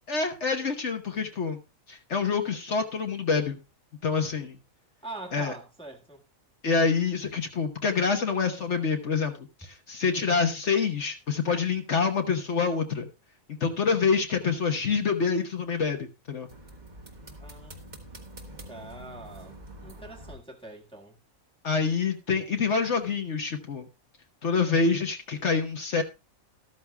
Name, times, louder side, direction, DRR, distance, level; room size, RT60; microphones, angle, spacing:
voice 1, 0.1-1.6 1.9-3.6 4.0-4.6 5.3-5.5 6.6-13.1 13.6-16.5 21.6-23.9 24.4-26.0, left 5 dB, 55° left, 1.4 m, -26 dB
voice 2, 5.0-6.2 17.4-17.7 18.7-21.2, right 2 dB, 5° left, 1.4 m, -43 dB
sound 1, 16.5-20.4, right 1 dB, 35° right, 1.6 m, -45 dB
13.0 x 13.0 x 2.2 m
omnidirectional pair, 1.4 m